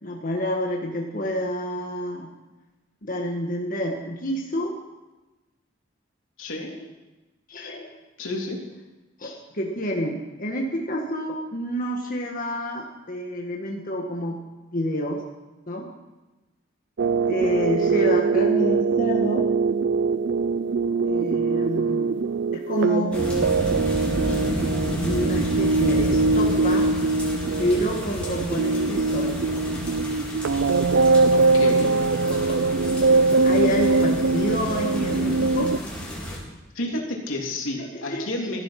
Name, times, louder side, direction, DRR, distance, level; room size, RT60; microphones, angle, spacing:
voice 1, 0.0-2.3 3.0-4.8 7.5-7.9 9.2-14.4 14.7-15.2 15.7-15.9 17.3-19.5 21.0-22.2 22.5-23.1 24.8-26.9 27.6-29.6 32.4-32.6 33.4-35.7 37.8-38.6, equal, 45° left, 0 dB, 1.7 m, -28 dB
voice 2, 6.4-6.9 8.2-8.6 31.3-31.9 36.7-38.6, left 1 dB, 85° left, 0 dB, 3.2 m, -30 dB
sound 1, 17.0-35.8, right 3 dB, 60° right, 0.5 m, -22 dB
sound 2, 23.1-36.4, equal, 5° left, 4.1 m, -32 dB
16.5 x 13.0 x 5.9 m, 1.1 s
head